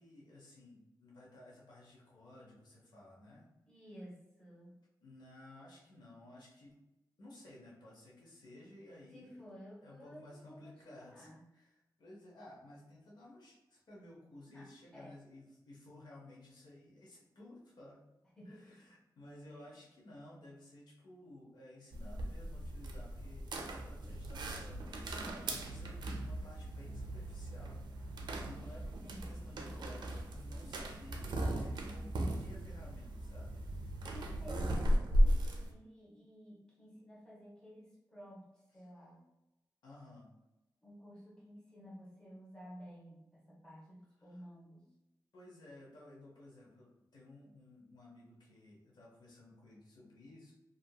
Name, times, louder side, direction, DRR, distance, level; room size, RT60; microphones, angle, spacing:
voice 1, 0.0-3.5 5.0-6.8 7.2-9.5 9.8-18.0 18.4-34.1 39.8-40.3 44.3-44.4 45.3-50.5, left 1 dB, 70° left, -4 dB, 0.8 m, -56 dB
voice 2, 3.7-4.7 9.1-11.4 14.5-14.7 14.9-15.3 18.4-18.8 19.5-19.7 25.1-25.4 29.0-29.4 34.0-39.2 40.8-44.8, equal, 10° left, -6 dB, 1.0 m, -54 dB
sound 1, 21.9-35.7, equal, 90° right, 0.4 m, -36 dB
2.7 x 2.6 x 2.2 m, 0.95 s
wide cardioid pair, 115°, 7 cm